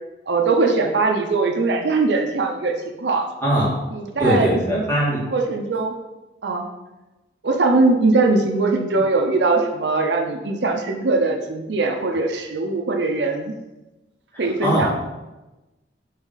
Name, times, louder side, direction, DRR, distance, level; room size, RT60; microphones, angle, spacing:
voice 1, 0.3-3.3 3.9-4.8 5.3-5.9 6.4-6.7 7.4-13.6 14.4-14.9, right 3 dB, 70° right, 3 dB, 0.7 m, -21 dB
voice 2, 3.4-3.7 4.2-5.3 14.3-14.9, right 1 dB, 10° left, -7 dB, 2.1 m, -21 dB
8.4 x 3.6 x 4.0 m, 1.0 s
head